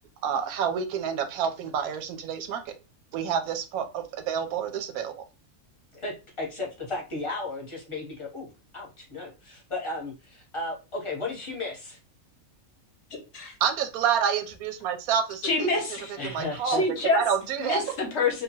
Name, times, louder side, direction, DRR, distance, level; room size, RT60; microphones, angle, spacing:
voice 1, 0.2-2.7 3.1-5.1 13.6-15.7 16.2-16.8 17.1-17.8, right 8 dB, 90° right, 8 dB, 1.1 m, -28 dB
voice 2, 6.4-8.5 8.7-12.0 16.2-16.8, left 2 dB, 25° left, -2 dB, 0.8 m, -34 dB
voice 3, 15.4-16.1 16.6-17.2 17.6-18.4, left 3 dB, 60° left, 3 dB, 0.9 m, -26 dB
2.9 x 2.2 x 2.7 m, 0.30 s
omnidirectional pair, 1.5 m